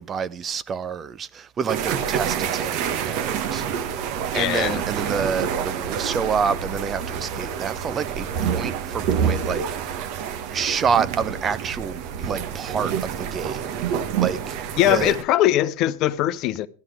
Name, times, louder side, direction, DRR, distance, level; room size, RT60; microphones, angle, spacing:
voice 1, 0.0-4.0 4.3-9.9 10.5-14.6 14.9-15.2, right 6 dB, 25° right, 0.6 m, -28 dB
sound 1, 1.7-15.2, right 8 dB, 50° right, 1.2 m, -27 dB
voice 2, 4.3-4.8 14.8-16.7, left 14 dB, 45° left, 0.8 m, -21 dB
13.0 x 10.5 x 4.8 m
figure-of-eight pair, 90°, 0 cm